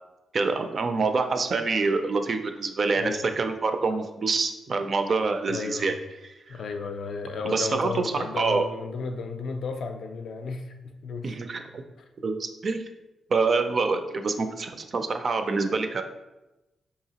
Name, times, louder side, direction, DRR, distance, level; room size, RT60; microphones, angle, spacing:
voice 1, 0.3-5.9 6.2-6.5 7.4-8.6 11.2-11.8 12.2-12.8 13.3-16.0, right 4 dB, 40° right, 7 dB, 0.3 m, -26 dB
voice 2, 3.0-3.3 5.5-5.9 6.5-11.3, left 4 dB, 60° left, 6 dB, 0.4 m, -34 dB
4.7 x 2.8 x 2.8 m, 1.0 s
wide cardioid pair, 140°, 0 cm